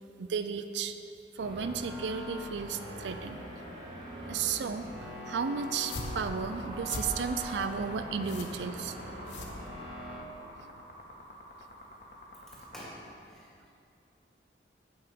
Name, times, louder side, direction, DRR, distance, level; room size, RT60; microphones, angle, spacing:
voice 1, 0.2-1.0 1.3-3.4 4.2-9.0, right 6 dB, 75° right, 9 dB, 0.4 m, -34 dB
sound 1, 1.4-10.2, left 1 dB, 45° right, 2.4 m, -43 dB
sound 2, 5.3-12.8, left 1 dB, 50° left, 1.5 m, -48 dB
sound 3, 5.7-10.2, left 2 dB, 80° left, 1.1 m, -42 dB
voice 2, 12.5-13.0 13.3-13.7, equal, ahead, -7 dB, 2.0 m, -48 dB
8.7 x 5.6 x 7.5 m, 2.6 s
head